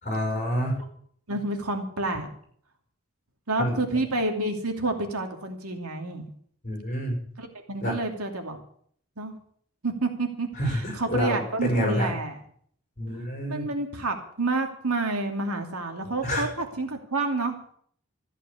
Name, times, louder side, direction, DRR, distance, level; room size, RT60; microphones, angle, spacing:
voice 1, 0.0-0.8 3.6-3.8 6.6-7.2 7.8-7.9 10.6-12.1 13.0-13.6 16.2-16.5, equal, 35° left, 1 dB, 5.7 m, -27 dB
voice 2, 1.3-2.3 3.5-6.3 7.4-8.6 9.2-9.3 9.8-12.4 13.5-17.6, right 2 dB, 85° right, 4 dB, 2.7 m, -29 dB
14.5 x 9.1 x 8.4 m, 0.62 s
head